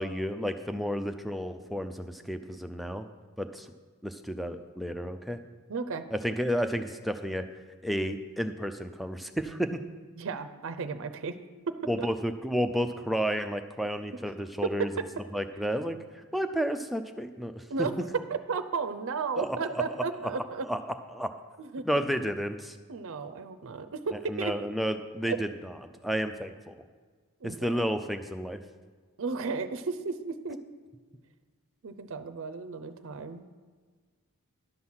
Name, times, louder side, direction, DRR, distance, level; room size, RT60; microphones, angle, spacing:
voice 1, 0.0-3.1 3.4-3.7 4.0-5.4 6.1-7.5 7.8-9.8 11.9-14.9 15.3-16.0 16.3-17.9 19.4-20.3 20.6-20.8 21.1-21.3 21.9-22.8 24.3-25.7 26.0-26.7 27.4-28.6, equal, ahead, 7 dB, 0.4 m, -31 dB
voice 2, 5.7-6.0 10.2-11.4 12.0-12.1 14.8-14.9 17.7-17.9 18.3-20.7 21.6-22.1 22.9-24.5 25.2-25.4 27.4-27.8 29.2-30.6 31.8-33.5, right 4 dB, 60° right, 9 dB, 0.6 m, -34 dB
11.0 x 6.1 x 5.7 m, 1.5 s
head